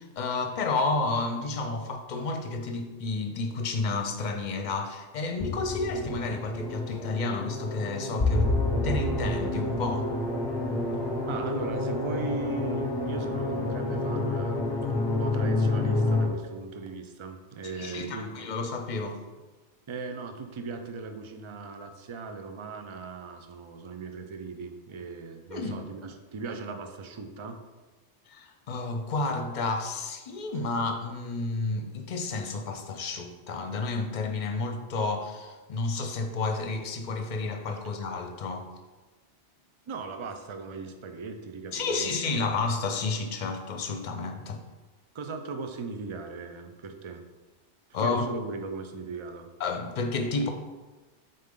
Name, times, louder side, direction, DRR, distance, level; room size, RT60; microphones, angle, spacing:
voice 1, 0.0-8.5 8.8-10.1 17.8-19.2 25.5-25.7 28.3-38.7 41.7-44.6 47.9-48.3 49.6-50.5, left 3 dB, 45° left, 6 dB, 0.7 m, -31 dB
sound 1, 5.4-16.3, left 2 dB, 25° left, 0.9 m, -28 dB
voice 2, 11.3-18.3 19.9-27.6 39.9-42.4 45.1-47.2 48.0-49.5, right 4 dB, 50° right, 6 dB, 0.3 m, -38 dB
7.6 x 4.0 x 3.7 m, 1.2 s
omnidirectional pair, 1.2 m